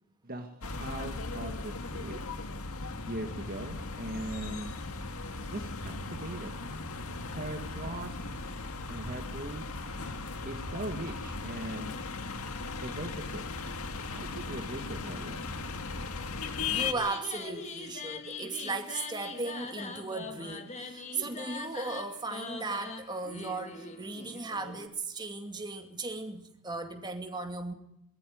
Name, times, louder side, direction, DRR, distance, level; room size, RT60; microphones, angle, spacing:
voice 1, 0.2-2.2 3.1-4.7 5.5-6.5 7.3-8.2 8.9-9.6 10.5-12.0 12.8-13.5 14.1-15.4, right 1 dB, 40° right, 5 dB, 1.7 m, -40 dB
sound 1, 0.6-16.9, left 4 dB, 75° left, 1.9 m, -37 dB
voice 2, 16.7-27.7, right 3 dB, 20° right, 5 dB, 2.4 m, -37 dB
sound 2, 16.8-24.9, left 4 dB, 30° left, 2.1 m, -42 dB
21.0 x 14.0 x 9.4 m, 0.82 s
head